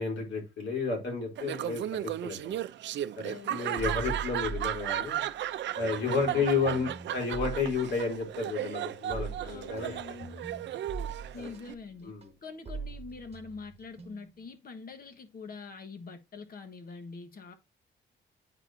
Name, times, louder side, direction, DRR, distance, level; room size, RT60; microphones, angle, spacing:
voice 1, 0.0-2.6 3.2-5.3 5.7-9.9 11.4-11.5 12.0-12.3, left 4 dB, 70° left, 3.3 m, -32 dB
Laughter, 1.4-11.7, right 12 dB, 65° right, 0.5 m, -35 dB
voice 2, 3.2-4.0 5.8-6.9 9.4-10.5 11.3-12.2 12.4-17.5, left 4 dB, 50° left, 1.4 m, -45 dB
sound 1, 3.8-5.5 5.8-14.4, right 4 dB, 30° right, 1.3 m, -42 dB
8.9 x 4.1 x 2.7 m
cardioid pair, 90°, 20 cm